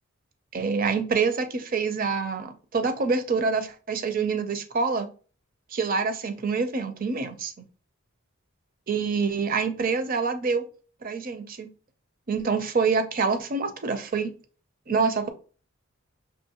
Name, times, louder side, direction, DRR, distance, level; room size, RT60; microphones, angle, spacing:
voice 1, 0.5-5.1 5.7-7.7 8.9-10.6 11.0-11.7 12.3-14.3 14.9-15.3, right 4 dB, 40° right, 9 dB, 0.5 m, -26 dB
5.5 x 2.9 x 2.9 m, 0.38 s
head